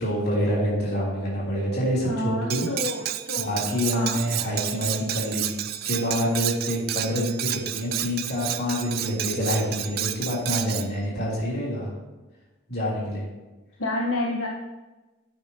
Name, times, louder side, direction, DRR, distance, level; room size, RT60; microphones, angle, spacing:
voice 1, 0.0-2.7 3.4-11.9 12.7-13.2, equal, 50° left, -5 dB, 3.2 m, -27 dB
voice 2, 2.0-3.6 3.9-4.2 13.8-14.5, left 1 dB, 70° left, -3 dB, 1.1 m, -29 dB
Cutlery silverware, 2.5-10.9, right 12 dB, 45° right, 0.4 m, -30 dB
10.0 x 8.8 x 2.9 m, 1.1 s
head